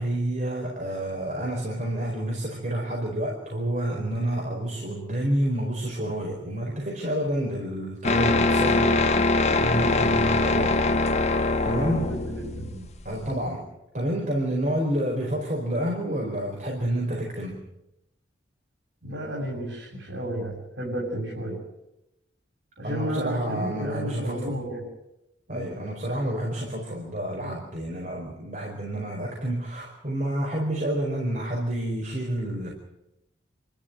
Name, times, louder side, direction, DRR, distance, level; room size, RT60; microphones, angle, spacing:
voice 1, 0.0-9.1 9.5-10.8 11.6-12.1 13.0-13.6 13.9-17.6 22.8-24.6 25.5-32.7, right 1 dB, 40° right, -2 dB, 4.8 m, -29 dB
sound 1, 8.0-13.4, left 3 dB, 35° left, 1.0 m, -23 dB
voice 2, 11.9-13.3 19.0-21.6 22.8-24.8 25.5-25.6 27.4-27.5, right 1 dB, 75° right, -4 dB, 7.5 m, -33 dB
29.0 x 13.5 x 9.6 m, 0.90 s
head